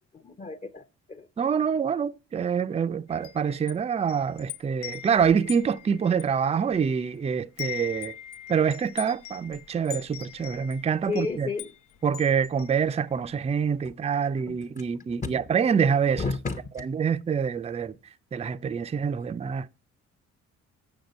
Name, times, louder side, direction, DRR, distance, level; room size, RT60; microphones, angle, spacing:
voice 1, 0.1-1.3 11.1-11.7 14.5-14.6 15.2-15.3 16.2-16.8, left 4 dB, 25° left, 0.7 m, -32 dB
voice 2, 1.4-8.1 8.5-11.5 12.0-16.2 16.8-17.9 18.3-19.7, right 7 dB, 20° right, 0.4 m, -26 dB
Wind chime, 3.1-7.2 7.4-13.4, left 11 dB, 80° left, 0.6 m, -42 dB
8.0 x 6.4 x 5.1 m
cardioid pair, 90°, 30 cm